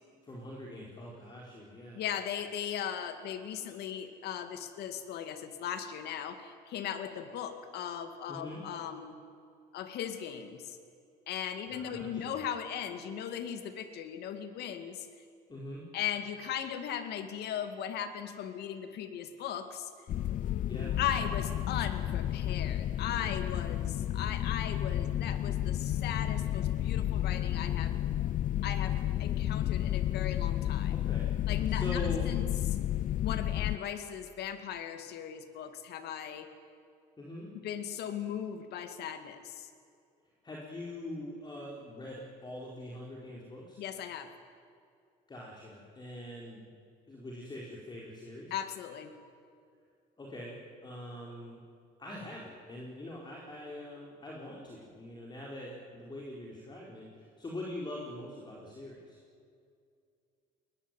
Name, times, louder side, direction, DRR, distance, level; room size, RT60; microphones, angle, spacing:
voice 1, 0.2-2.0 8.3-8.6 11.7-12.4 15.5-15.8 20.7-20.9 30.9-32.3 37.2-37.5 40.4-43.8 45.3-46.6 47.1-48.5 50.2-51.6 52.0-59.2, left 1 dB, 25° left, -3 dB, 4.6 m, -43 dB
voice 2, 1.9-9.2 9.7-10.8 11.3-15.1 15.9-19.9 21.0-28.0 28.6-30.9 31.5-32.5 33.2-36.5 37.6-39.7 43.8-44.3 48.5-49.1, left 9 dB, 75° left, 9 dB, 2.3 m, -38 dB
sound 1, 20.1-33.8, left 12 dB, 50° left, 0.5 m, -31 dB
21.5 x 20.5 x 9.3 m, 2.3 s
cardioid pair, 110°, 17 cm